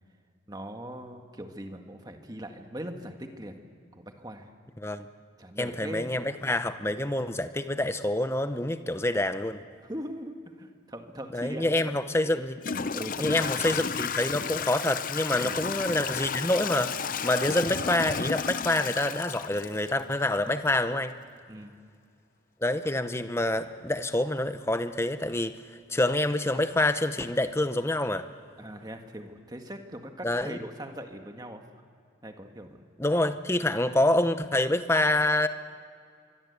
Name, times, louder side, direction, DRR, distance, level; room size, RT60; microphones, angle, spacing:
voice 1, 0.5-3.6 3.9-4.5 5.0-5.1 5.4-6.1 9.8-11.9 12.9-13.5 15.4-15.6 21.5-21.8 28.6-31.6 32.2-32.8, equal, 20° right, 4 dB, 1.7 m, -40 dB
voice 2, 5.6-9.6 11.3-12.6 13.2-16.9 17.2-21.1 22.6-25.6 25.9-28.2 30.2-30.6 33.0-35.5, left 1 dB, 15° left, 10 dB, 0.8 m, -27 dB
Toilet flush / Trickle dribble, 11.8-11.9 12.6-20.4, left 6 dB, 45° left, 0.6 m, -32 dB
25.0 x 23.0 x 8.2 m, 2.2 s
head